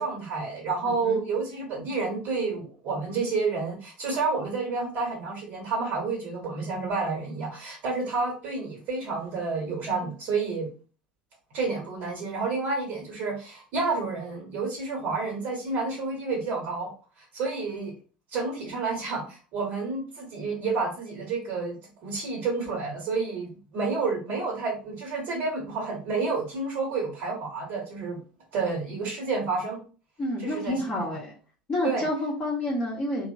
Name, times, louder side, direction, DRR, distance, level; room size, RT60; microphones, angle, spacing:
voice 1, 0.0-10.7 11.5-16.9 17.3-17.9 18.3-28.2 28.5-29.8 30.4-31.1 31.8-32.1, right 4 dB, 50° right, -1 dB, 1.0 m, -30 dB
voice 2, 0.8-1.2 30.2-31.3 31.7-33.3, left 1 dB, 25° left, -4 dB, 0.7 m, -29 dB
2.9 x 2.0 x 2.5 m, 0.37 s
figure-of-eight pair, 70°, 5 cm